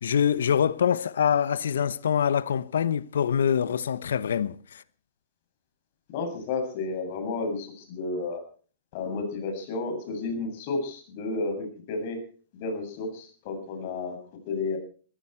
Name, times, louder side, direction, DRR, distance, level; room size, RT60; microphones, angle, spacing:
voice 1, 0.0-4.8, left 8 dB, 80° left, 1.0 m, -25 dB
voice 2, 6.1-8.4 8.9-12.2 12.5-14.2 14.5-14.8, left 3 dB, 55° left, 7.8 m, -32 dB
20.5 x 15.5 x 4.6 m
hypercardioid pair, 120°, 0 cm